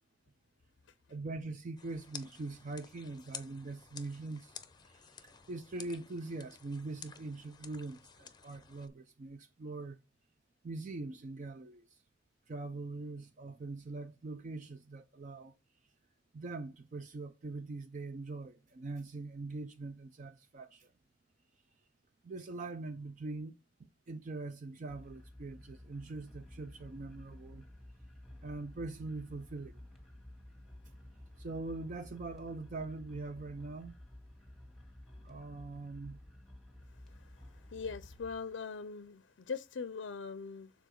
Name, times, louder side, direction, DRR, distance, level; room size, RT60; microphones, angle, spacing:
voice 1, 1.1-4.6 4.9-10.0 10.6-12.0 12.5-15.6 16.3-20.9 22.2-23.5 23.8-27.7 28.4-29.9 31.4-33.9 35.2-36.3, right 3 dB, 40° right, 0.4 m, -43 dB
sound 1, 1.8-8.9, left 7 dB, 20° left, 0.6 m, -52 dB
sound 2, 24.9-38.3, left 1 dB, ahead, 1.7 m, -53 dB
voice 2, 36.9-40.7, left 5 dB, 70° left, 0.4 m, -42 dB
6.9 x 3.9 x 4.4 m
head